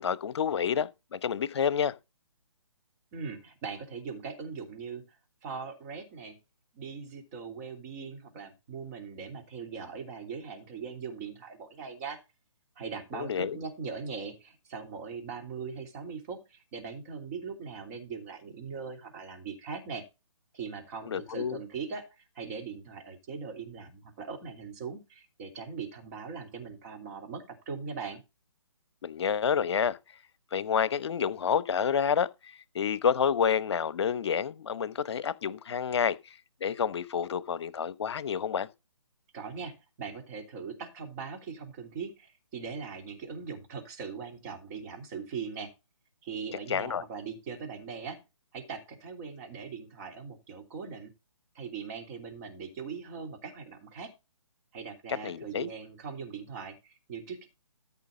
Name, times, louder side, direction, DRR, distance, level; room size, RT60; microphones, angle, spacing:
voice 1, 0.0-1.9 13.1-13.6 21.1-21.6 29.0-30.0 30.5-32.3 32.7-36.2 36.6-38.7 46.7-47.0 55.1-55.7, left 7 dB, 55° left, 0.9 m, -29 dB
voice 2, 3.1-6.4 6.7-12.2 12.8-20.0 20.5-28.2 39.3-45.7 46.2-48.2 48.5-51.1 51.5-54.1 54.7-57.5, right 5 dB, 30° right, 3.1 m, -40 dB
13.5 x 5.7 x 3.8 m
figure-of-eight pair, 145°, 17 cm